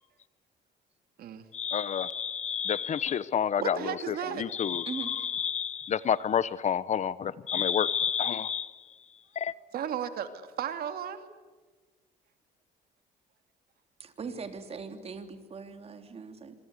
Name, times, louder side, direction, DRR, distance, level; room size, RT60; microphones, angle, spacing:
voice 1, 1.5-8.7 9.4-9.5, left 8 dB, 45° left, 18 dB, 0.9 m, -29 dB
voice 2, 3.6-4.5 9.7-10.3 10.6-11.3, right 9 dB, 65° right, 8 dB, 2.8 m, -34 dB
voice 3, 14.0-16.5, right 5 dB, 35° right, 7 dB, 3.3 m, -40 dB
26.5 x 24.5 x 8.2 m, 1.3 s
cardioid pair, 110°, 17 cm